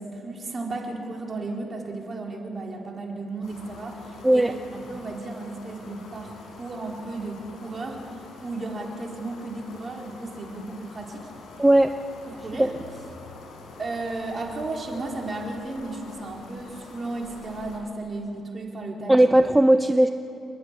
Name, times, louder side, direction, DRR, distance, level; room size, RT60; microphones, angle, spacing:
voice 1, 0.0-8.1 8.4-11.2 12.3-12.7 13.8-19.1, right 2 dB, 35° right, 0 dB, 4.2 m, -34 dB
sound 1, 3.4-17.8, left 3 dB, 75° left, 7.0 m, -46 dB
voice 2, 11.6-11.9 12.6-12.7 19.1-20.1, right 1 dB, 10° right, 8 dB, 0.7 m, -17 dB
28.5 x 11.0 x 9.9 m, 2.9 s
cardioid pair, 90°, 0 cm